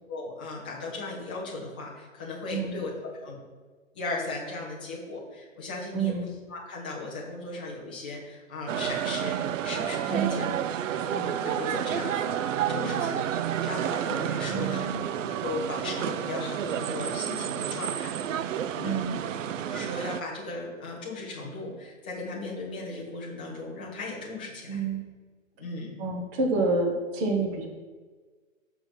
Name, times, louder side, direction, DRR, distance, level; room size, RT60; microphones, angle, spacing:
voice 1, 0.1-3.4 3.9-10.6 11.1-12.3 12.7-14.8 15.3-19.0 19.6-24.8 25.6-25.9, left 3 dB, 10° left, -4 dB, 0.4 m, -37 dB
voice 2, 2.5-2.8 5.9-6.3 10.1-10.5 14.5-15.0 18.8-19.3 24.7-25.0 26.0-27.7, right 3 dB, 25° right, 2 dB, 1.1 m, -28 dB
sound 1, 8.7-20.2, right 9 dB, 70° right, 0.5 m, -30 dB
6.6 x 4.5 x 5.9 m, 1.4 s
hypercardioid pair, 145°, 40 cm